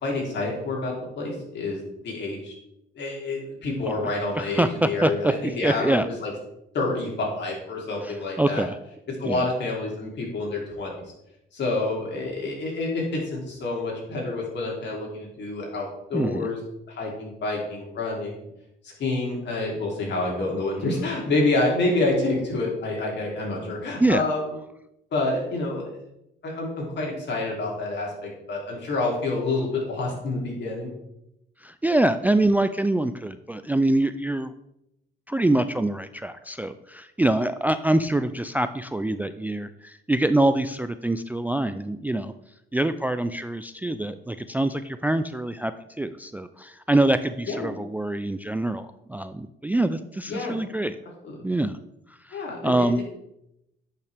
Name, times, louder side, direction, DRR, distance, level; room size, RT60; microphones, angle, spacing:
voice 1, 0.0-2.5 2.9-6.3 6.7-8.6 9.1-11.0 11.5-16.6 16.9-18.4 18.8-24.4 25.1-26.0 26.4-30.9 47.5-47.7 50.3-50.6 51.2-51.4 52.3-52.9, left 2 dB, 60° left, -2 dB, 3.0 m, -28 dB
voice 2, 4.6-6.1 8.0-8.8 9.2-9.4 16.1-16.5 24.0-24.3 31.6-34.5 35.3-42.3 42.7-45.7 46.0-51.0 51.4-51.8 52.1-53.0, right 1 dB, 10° right, 11 dB, 0.3 m, -25 dB
10.5 x 5.7 x 3.5 m, 0.83 s
cardioid pair, 90°, 20 cm